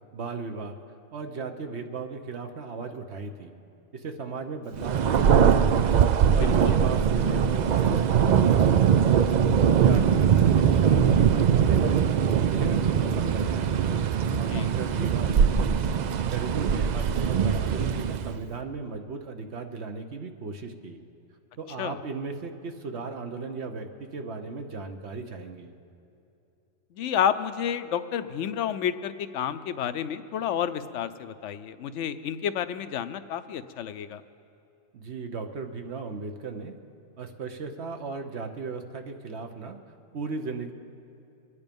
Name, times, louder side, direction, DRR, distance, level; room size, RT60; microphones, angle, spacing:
voice 1, 0.1-0.8 1.1-3.6 3.9-5.9 6.3-9.1 9.6-12.1 12.5-14.0 14.4-15.9 16.2-21.0 21.6-25.7 34.9-36.8 37.2-39.8 40.1-40.7, right 4 dB, 60° right, 6 dB, 1.2 m, -36 dB
Thunder, 4.8-18.4, right 7 dB, 90° right, 0.3 m, -22 dB
voice 2, 6.4-6.8 14.3-14.7 21.8-22.0 26.9-34.2, left 9 dB, 75° left, 11 dB, 0.9 m, -30 dB
25.0 x 9.9 x 5.3 m, 2.7 s
omnidirectional pair, 1.3 m